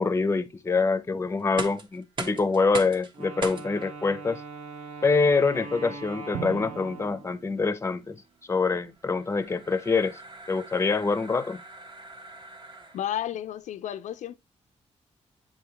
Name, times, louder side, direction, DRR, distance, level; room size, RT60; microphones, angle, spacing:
voice 1, 0.0-4.4 5.0-10.2 10.5-11.6, left 4 dB, 20° left, 0.6 m, -25 dB
sound 1, 1.4-13.3, right 3 dB, 40° right, 1.2 m, -43 dB
Wind instrument woodwind instrument, 3.1-7.5, right 3 dB, 75° right, 2.0 m, -41 dB
Drum, 6.3-8.4, right 9 dB, 60° right, 0.6 m, -40 dB
voice 2, 12.9-14.4, left 11 dB, 85° left, 0.5 m, -32 dB
7.6 x 4.9 x 2.9 m
cardioid pair, 115°, 12 cm